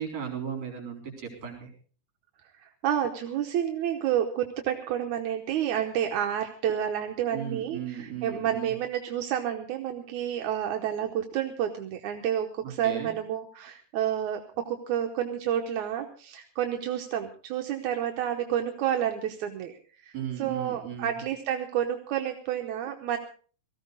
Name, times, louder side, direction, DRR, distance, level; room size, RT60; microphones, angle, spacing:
voice 1, 0.0-1.7 7.3-8.7 12.8-13.1 20.1-21.1, right 8 dB, 60° right, 2 dB, 5.0 m, -36 dB
voice 2, 2.6-23.2, right 10 dB, 75° right, 3 dB, 2.3 m, -30 dB
18.5 x 14.5 x 4.0 m, 0.42 s
omnidirectional pair, 3.5 m